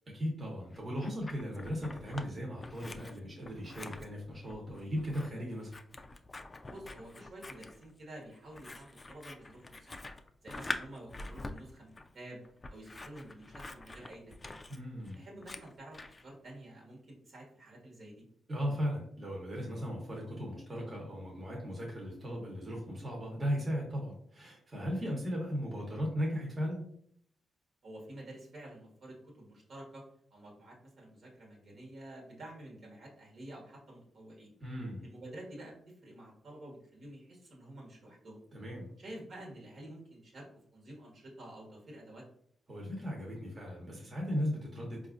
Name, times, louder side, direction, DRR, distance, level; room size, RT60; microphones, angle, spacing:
voice 1, 0.1-5.7 14.7-15.2 18.5-26.9 34.6-35.0 38.5-38.9 42.7-45.1, equal, 35° right, -1 dB, 1.0 m, -37 dB
Scissors, 0.7-2.3 2.6-16.2, left 2 dB, 30° left, 0.3 m, -45 dB
voice 2, 6.7-10.0 10.4-12.4 12.7-14.5 15.1-18.2 27.8-30.0 30.3-34.5 35.0-38.4 39.0-42.2, right 1 dB, 60° right, -2 dB, 1.2 m, -50 dB
4.1 x 2.4 x 2.5 m, 0.64 s
cardioid pair, 60°, 0 cm